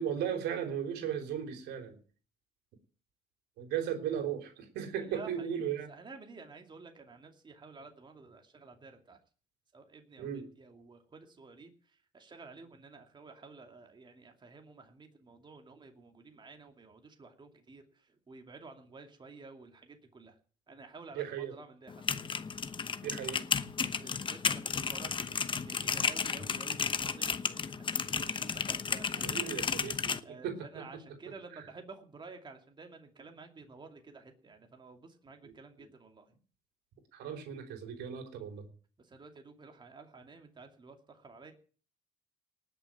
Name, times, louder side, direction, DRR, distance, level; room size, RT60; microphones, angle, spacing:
voice 1, 0.0-2.0 3.6-5.9 10.2-10.5 21.1-21.5 23.0-23.4 29.1-30.9 35.4-35.5 37.1-38.7, right 8 dB, 80° right, 5 dB, 3.5 m, -36 dB
voice 2, 5.0-5.6 5.9-9.2 9.7-20.4 20.7-22.4 23.8-29.5 30.2-36.3 39.0-41.5, right 4 dB, 25° right, 4 dB, 2.5 m, -52 dB
sound 1, 21.9-30.2, left 5 dB, 30° left, 1.0 m, -33 dB
19.0 x 6.9 x 9.0 m, 0.42 s
cardioid pair, 110°, 17 cm